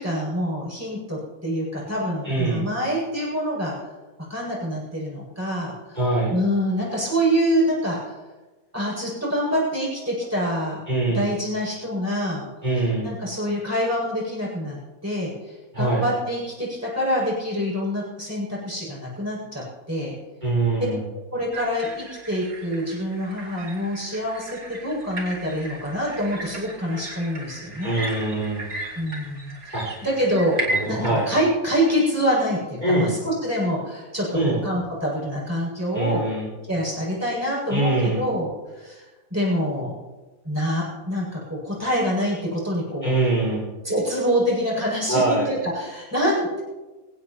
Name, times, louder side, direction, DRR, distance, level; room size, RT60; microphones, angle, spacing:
voice 1, 0.0-3.7 4.3-6.0 6.3-8.1 8.7-10.8 11.1-12.5 13.0-14.8 15.0-20.1 21.3-28.0 29.0-36.2 36.7-39.0 39.3-39.9 40.4-43.1 43.8-46.6, equal, 10° right, -6 dB, 7.6 m, -26 dB
voice 2, 2.2-2.6 5.9-6.3 10.9-11.3 12.6-13.1 15.7-16.0 20.4-21.0 27.8-28.6 29.7-29.9 30.7-31.2 32.8-33.1 34.3-34.6 35.9-36.5 37.7-38.2 43.0-43.6 45.1-45.5, right 2 dB, 30° right, -9 dB, 5.6 m, -23 dB
sound 1, 21.5-31.4, right 1 dB, 75° right, 3.0 m, -35 dB
26.0 x 16.5 x 3.2 m, 1.2 s
omnidirectional pair, 1.6 m